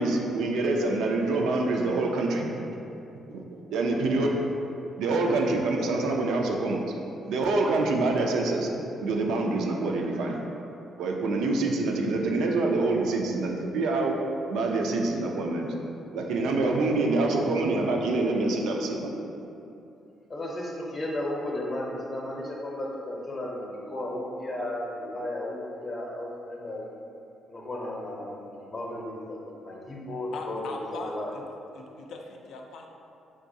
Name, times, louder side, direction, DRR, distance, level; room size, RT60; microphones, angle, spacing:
voice 1, 0.0-2.7 3.3-3.4 3.7-4.3 5.0-6.8 7.2-10.4 11.0-14.2 14.5-15.7 16.1-19.1, right 2 dB, 85° right, 1 dB, 0.4 m, -26 dB
voice 2, 20.3-26.9 27.5-31.3, left 1 dB, 35° left, -2 dB, 0.7 m, -34 dB
voice 3, 30.3-31.4 31.7-32.9, left 3 dB, 80° left, 1 dB, 0.3 m, -39 dB
3.5 x 3.0 x 2.6 m, 2.8 s
cardioid pair, 90°, 0 cm